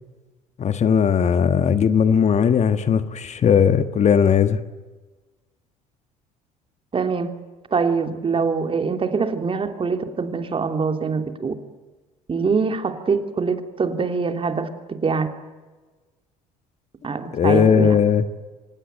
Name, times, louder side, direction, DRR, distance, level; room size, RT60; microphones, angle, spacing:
voice 1, 0.6-4.6 17.3-18.2, left 7 dB, 40° left, 11 dB, 1.5 m, -18 dB
voice 2, 6.9-7.3 7.7-11.5 12.3-15.3 17.0-18.0, right 5 dB, 35° right, 7 dB, 3.0 m, -24 dB
25.5 x 19.5 x 9.2 m, 1.3 s
hypercardioid pair, 65°, 17 cm